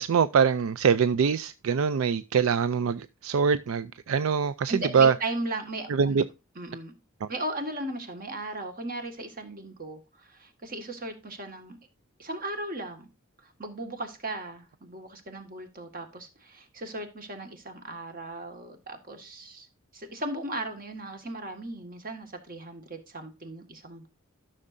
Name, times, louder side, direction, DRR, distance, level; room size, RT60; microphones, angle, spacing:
voice 1, 0.0-5.1 5.9-6.2 7.2-7.3, right 6 dB, 80° right, 0.4 m, -24 dB
voice 2, 4.7-6.2 6.6-6.9 7.3-11.8 12.2-13.1 13.4-19.7 19.9-24.1, right 2 dB, 45° right, 1.8 m, -37 dB
13.5 x 6.4 x 2.6 m
head